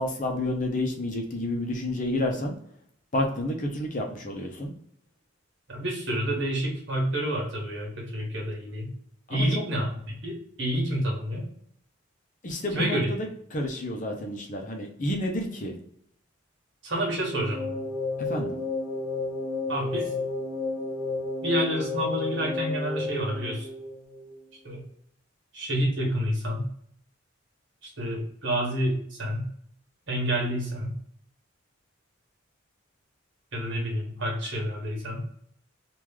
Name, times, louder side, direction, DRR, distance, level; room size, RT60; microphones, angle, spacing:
voice 1, 0.0-2.6 3.1-4.7 9.3-9.6 12.4-13.3 13.5-15.8 18.3-18.6, left 1 dB, 40° left, 2 dB, 0.7 m, -30 dB
voice 2, 5.7-8.9 9.3-10.3 10.6-11.5 12.7-13.1 16.8-17.8 19.7-20.1 21.4-23.7 24.6-24.8 25.5-26.7 27.8-29.5 30.1-30.9 33.5-35.2, equal, 60° right, -1 dB, 1.3 m, -28 dB
sound 1, 17.2-24.4, left 3 dB, 25° right, 1.1 m, -32 dB
3.1 x 2.5 x 3.5 m, 0.65 s
head